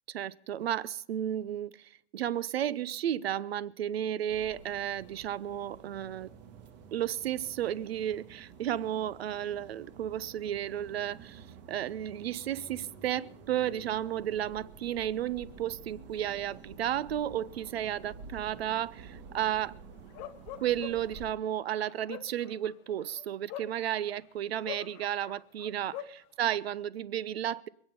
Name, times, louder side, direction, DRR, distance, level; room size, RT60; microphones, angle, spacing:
voice 1, 0.1-6.3 6.9-19.8 20.6-26.1 26.4-27.7, right 11 dB, 65° right, 0.9 m, -33 dB
sound 1, 4.3-21.3, right 5 dB, 40° right, 2.2 m, -50 dB
Bark, 20.1-21.2 21.8-24.2 24.6-26.2, left 12 dB, 20° left, 0.7 m, -43 dB
26.5 x 9.0 x 5.4 m
hypercardioid pair, 160°, 33 cm